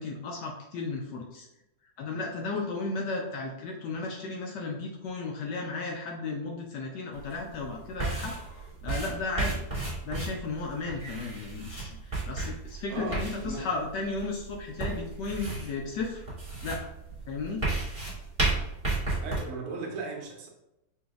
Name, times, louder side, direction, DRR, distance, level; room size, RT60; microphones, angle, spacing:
voice 1, 0.0-1.5 2.0-8.3 8.8-9.6 10.0-16.3 16.6-16.8 17.3-17.6, left 3 dB, 75° left, 0 dB, 1.0 m, -34 dB
sound 1, 7.1-19.4, right 3 dB, 15° right, 1.3 m, -34 dB
voice 2, 12.9-13.7 19.2-20.5, right 3 dB, 85° right, 1 dB, 1.7 m, -37 dB
5.8 x 2.6 x 2.4 m, 0.88 s
omnidirectional pair, 2.4 m